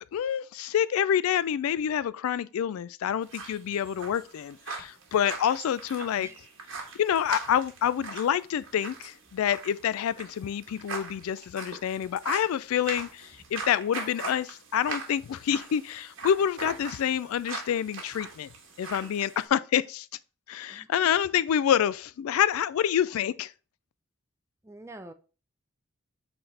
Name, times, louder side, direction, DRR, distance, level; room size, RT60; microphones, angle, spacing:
voice 1, 0.1-6.3 7.0-18.5 18.8-20.1 20.5-23.5, left 9 dB, 75° left, 0.3 m, -27 dB
sound 1, 3.2-19.4, right 4 dB, 60° right, 1.4 m, -41 dB
voice 2, 20.7-21.3 24.6-25.1, right 2 dB, 10° right, 0.4 m, -46 dB
7.8 x 4.2 x 3.2 m
head